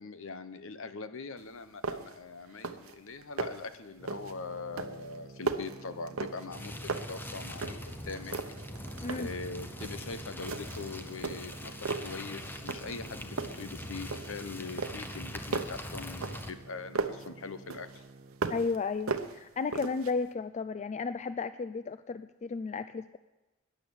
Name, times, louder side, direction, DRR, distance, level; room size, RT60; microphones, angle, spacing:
voice 1, 0.0-8.3 9.1-18.0, left 4 dB, 65° left, 11 dB, 0.9 m, -42 dB
sound 1, 1.4-1.5 1.8-2.2 2.5-2.9 3.2-3.7 4.1-4.4 4.8-6.6 6.9-8.0 8.3-9.4 9.8-10.1 10.5-10.9 11.2-12.2 12.7-13.1 13.4-14.5 14.8-17.3 17.7-18.8 19.1-20.1, right 4 dB, 75° right, 0.9 m, -36 dB
sound 2, 4.0-18.5, right 2 dB, 30° right, 0.8 m, -50 dB
sound 3, 6.5-16.5, left 1 dB, 10° left, 0.8 m, -42 dB
voice 2, 18.5-23.2, left 4 dB, 35° left, 12 dB, 0.4 m, -33 dB
12.5 x 10.5 x 7.1 m, 1.0 s
head